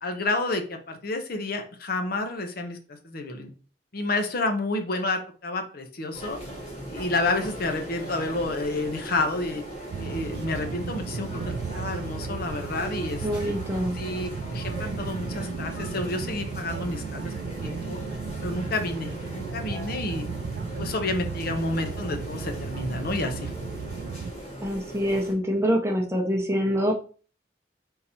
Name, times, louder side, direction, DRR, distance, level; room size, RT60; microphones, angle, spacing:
voice 1, 0.0-2.8 3.0-3.5 3.9-6.4 6.9-9.6 10.0-13.5 13.9-17.3 17.6-18.0 18.4-20.2 20.8-23.5, left 2 dB, 55° left, 6 dB, 0.7 m, -30 dB
sound 1, 6.1-25.3, right 1 dB, 35° left, 2.0 m, -39 dB
sound 2, 9.9-24.3, right 5 dB, 65° right, 0.3 m, -35 dB
voice 2, 13.2-14.0 24.6-26.9, equal, 15° right, 1 dB, 0.8 m, -25 dB
3.8 x 2.7 x 4.2 m, 0.39 s
head